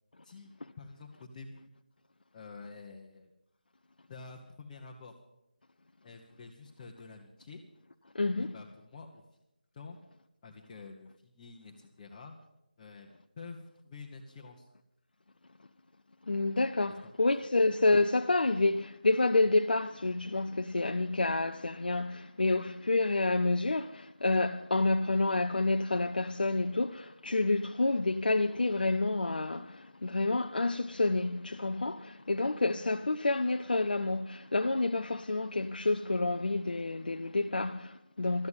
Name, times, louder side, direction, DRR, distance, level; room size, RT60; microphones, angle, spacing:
voice 1, 0.2-1.7 2.3-3.3 4.1-5.1 6.0-7.6 8.5-9.2 9.7-10.0 10.4-12.3 12.8-13.1 13.4-14.7 17.0-17.1 32.7-32.8, left 4 dB, 20° left, 1.1 m, -48 dB
voice 2, 8.1-8.5 16.3-38.5, left 2 dB, 70° left, 0.6 m, -29 dB
13.0 x 9.4 x 8.3 m
figure-of-eight pair, 165°, 5 cm